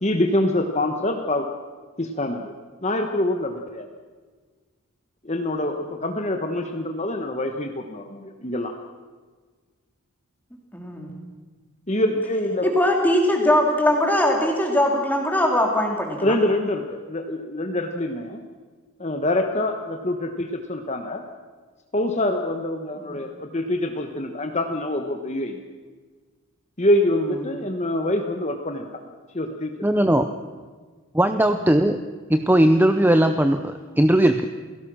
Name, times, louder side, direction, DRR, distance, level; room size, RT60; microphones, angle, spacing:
voice 1, 0.0-1.4 2.0-2.5 2.8-3.9 5.2-8.7 11.9-12.8 16.2-18.4 19.0-21.2 21.9-25.6 26.8-29.0 29.3-29.7, left 1 dB, 30° left, 4 dB, 1.2 m, -25 dB
voice 2, 10.7-11.1 12.6-16.3 23.0-23.2, left 1 dB, 10° left, 1 dB, 3.3 m, -21 dB
voice 3, 29.8-30.3 31.1-32.0 32.3-34.5, right 1 dB, 10° right, 8 dB, 0.6 m, -18 dB
28.5 x 17.5 x 6.3 m, 1.5 s
head